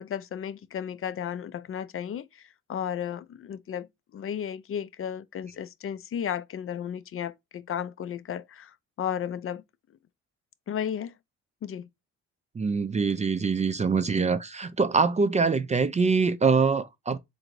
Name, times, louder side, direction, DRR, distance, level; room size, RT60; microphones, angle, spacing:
voice 1, 0.0-3.9 4.1-9.6 10.7-11.1 11.6-11.9, left 9 dB, 45° left, 0.5 m, -34 dB
voice 2, 12.5-17.2, right 5 dB, 25° right, 0.4 m, -24 dB
3.8 x 2.6 x 4.5 m
cardioid pair, 90°, 30 cm